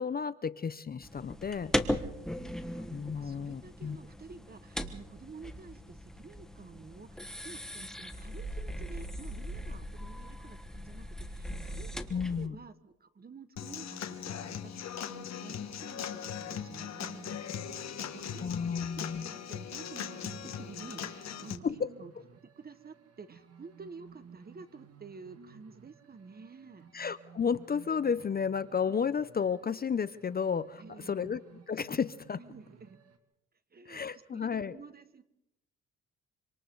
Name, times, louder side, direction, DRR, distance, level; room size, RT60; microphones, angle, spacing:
voice 1, 0.0-1.7 2.9-4.0 12.1-12.6 18.4-19.3 21.6-21.8 26.9-31.4 31.7-32.4 33.9-34.8, left 6 dB, 30° left, 16 dB, 0.7 m, -32 dB
sound 1, 1.0-12.5, equal, ahead, 1.7 m, -38 dB
voice 2, 2.1-22.1 22.5-26.9 30.8-31.4 32.5-33.0 33.7-34.0 34.3-35.2, right 4 dB, 30° right, 12 dB, 1.6 m, -51 dB
Human voice / Acoustic guitar / Drum, 13.6-21.6, left 8 dB, 60° left, 1.6 m, -40 dB
sound 2, 16.3-33.2, right 7 dB, 55° right, 2.5 m, -56 dB
26.5 x 26.0 x 3.9 m, 0.82 s
cardioid pair, 90°, 30 cm